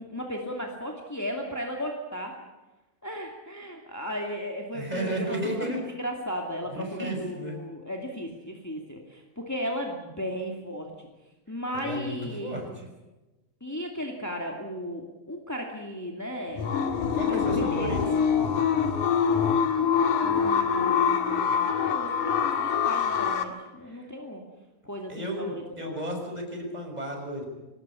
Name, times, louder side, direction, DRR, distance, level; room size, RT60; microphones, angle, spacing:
voice 1, 0.0-2.4 3.0-11.1 11.5-12.8 13.6-16.6 17.1-18.3 20.2-24.4 24.8-26.0, equal, 5° left, 1 dB, 1.5 m, -35 dB
voice 2, 4.7-5.8 6.7-7.6 11.7-12.8 17.1-18.0 23.9-24.1 25.1-27.5, right 1 dB, 10° right, 2 dB, 6.0 m, -33 dB
sound 1, 16.6-23.4, left 7 dB, 60° left, 3.1 m, -24 dB
25.0 x 19.0 x 8.5 m, 1.1 s
omnidirectional pair, 4.4 m